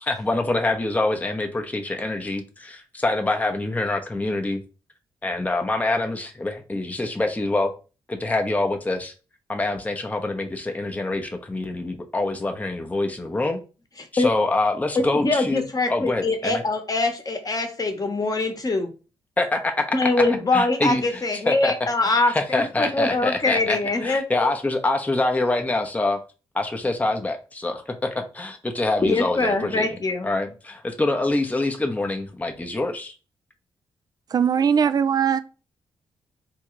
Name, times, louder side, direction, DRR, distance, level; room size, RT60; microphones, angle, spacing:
voice 1, 0.0-4.6 5.2-7.7 8.1-9.1 9.5-13.6 14.1-15.6 15.9-16.6 19.4-19.6 20.3-21.7 22.0-26.2 26.5-33.2, left 2 dB, 15° left, 0.7 m, -25 dB
voice 2, 15.1-18.9 19.9-24.5 29.0-30.3, left 2 dB, 35° left, 1.0 m, -23 dB
voice 3, 34.3-35.4, right 7 dB, 40° right, 0.3 m, -20 dB
3.5 x 2.3 x 3.0 m
supercardioid pair, 45°, 10 cm